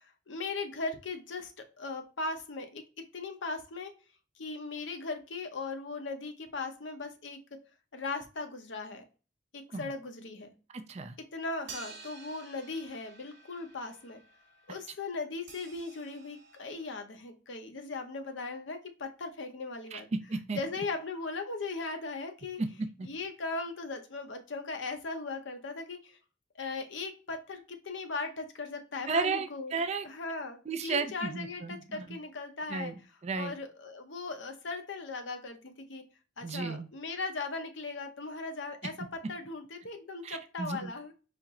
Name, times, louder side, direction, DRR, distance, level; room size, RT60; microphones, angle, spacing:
voice 1, 0.0-1.5 1.8-2.8 3.1-3.9 4.4-7.4 7.9-9.0 9.5-10.5 11.3-14.2 14.7-20.1 20.5-22.6 23.0-26.2 26.6-29.8 30.0-32.9 33.4-36.0 36.4-38.9 39.3-41.1, left 3 dB, 65° left, 5 dB, 0.7 m, -38 dB
voice 2, 10.7-11.2 19.9-20.6 22.6-23.1 29.1-30.1 30.7-32.2 32.7-33.5 36.4-36.9 40.2-40.9, right 4 dB, 35° right, 8 dB, 0.4 m, -34 dB
sound 1, 11.7-17.0, right 4 dB, 55° right, 1.1 m, -51 dB
4.3 x 2.0 x 3.6 m, 0.34 s
head